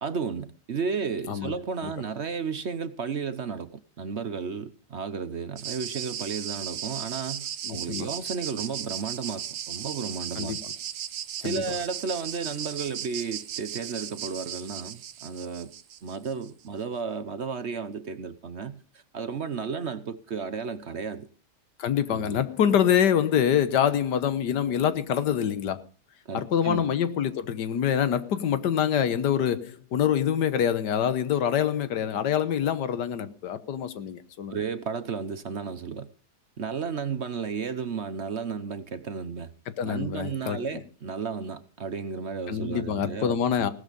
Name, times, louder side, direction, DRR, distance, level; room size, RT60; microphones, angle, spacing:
voice 1, 0.0-10.6 11.4-15.7 16.0-21.3 22.1-22.4 26.2-26.9 34.5-36.1 36.6-39.5 39.8-43.4, right 5 dB, 50° right, 1.1 m, -33 dB
sound 1, 5.6-16.5, right 10 dB, 90° right, 1.5 m, -36 dB
voice 2, 7.6-8.1 10.4-10.6 11.4-11.6 21.8-25.8 26.3-34.6 39.8-40.6 42.5-43.7, left 9 dB, 85° left, 1.7 m, -25 dB
17.0 x 12.5 x 5.3 m
omnidirectional pair, 1.8 m